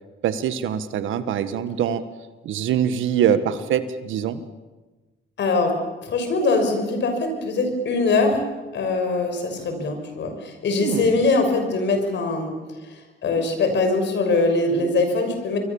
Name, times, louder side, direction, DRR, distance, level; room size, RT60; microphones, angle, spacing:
voice 1, 0.2-2.0 2.4-4.4 10.8-11.2, right 9 dB, 80° right, 12 dB, 1.6 m, -23 dB
voice 2, 5.4-5.8 6.0-8.4 8.7-12.5 13.2-15.6, left 3 dB, 65° left, 6 dB, 6.3 m, -22 dB
27.0 x 23.5 x 7.2 m, 1.2 s
cardioid pair, 90°, 20 cm